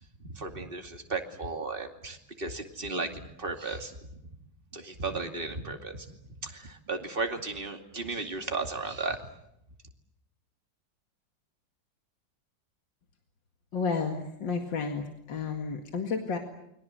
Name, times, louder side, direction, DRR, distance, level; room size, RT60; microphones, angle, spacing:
voice 1, 0.3-4.0 4.7-6.2 6.4-9.2, right 3 dB, 30° right, 4 dB, 2.6 m, -35 dB
voice 2, 13.7-16.4, left 5 dB, 80° left, 4 dB, 2.8 m, -31 dB
29.0 x 23.5 x 7.7 m, 0.80 s
omnidirectional pair, 2.0 m